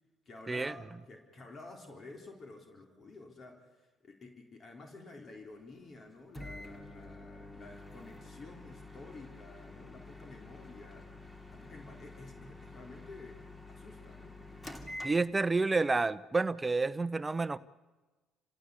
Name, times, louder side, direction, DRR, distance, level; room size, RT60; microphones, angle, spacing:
voice 1, 0.3-11.1 11.5-14.4, left 3 dB, 40° left, 2 dB, 4.0 m, -51 dB
Microwave oven, 6.3-15.7, left 2 dB, 15° left, 3.1 m, -48 dB
voice 2, 15.0-17.6, right 3 dB, 20° right, 16 dB, 0.9 m, -29 dB
28.0 x 16.5 x 8.4 m, 1.2 s
supercardioid pair, 75°, 0 cm